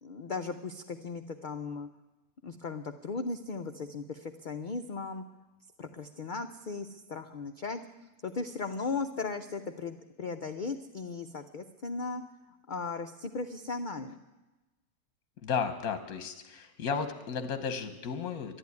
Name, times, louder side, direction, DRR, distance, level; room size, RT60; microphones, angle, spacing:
voice 1, 0.0-1.9 2.4-5.2 5.8-7.8 8.2-12.2 12.7-14.1, left 4 dB, 55° left, 7 dB, 0.5 m, -37 dB
voice 2, 15.4-18.6, left 6 dB, 75° left, 9 dB, 1.4 m, -34 dB
11.5 x 11.5 x 9.5 m, 1.1 s
omnidirectional pair, 1.5 m